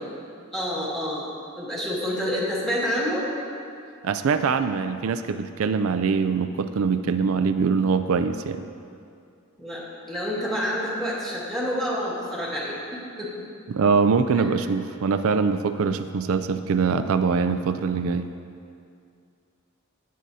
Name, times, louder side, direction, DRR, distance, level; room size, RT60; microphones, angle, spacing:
voice 1, 0.5-1.3 1.6-3.3 9.6-13.5 14.3-14.5, equal, ahead, -6 dB, 2.0 m, -28 dB
voice 2, 4.0-8.7 13.7-18.3, right 5 dB, 80° right, 10 dB, 0.4 m, -23 dB
17.5 x 7.6 x 2.7 m, 2.4 s
head